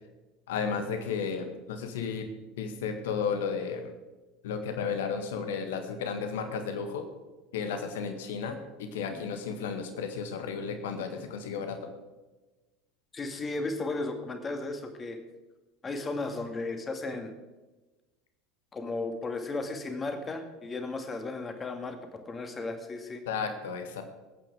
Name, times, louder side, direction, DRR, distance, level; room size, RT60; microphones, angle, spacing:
voice 1, 0.5-2.3 2.6-3.9 4.4-7.1 7.5-11.9 23.3-24.0, left 6 dB, 65° left, 7 dB, 1.8 m, -33 dB
voice 2, 13.1-15.2 15.8-17.3 18.7-23.2, left 3 dB, 20° left, 6 dB, 2.2 m, -35 dB
21.0 x 9.1 x 5.0 m, 1.2 s
figure-of-eight pair, 70°, 0 cm